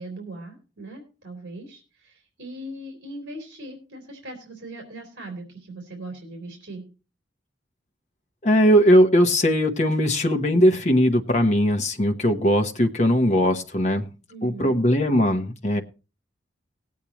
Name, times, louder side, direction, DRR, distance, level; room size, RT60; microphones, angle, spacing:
voice 1, 0.0-6.9 14.3-14.8, right 2 dB, 60° right, 1 dB, 3.3 m, -39 dB
voice 2, 8.4-14.1 14.4-15.8, equal, 35° left, 4 dB, 1.0 m, -19 dB
19.5 x 8.4 x 3.0 m, 0.33 s
head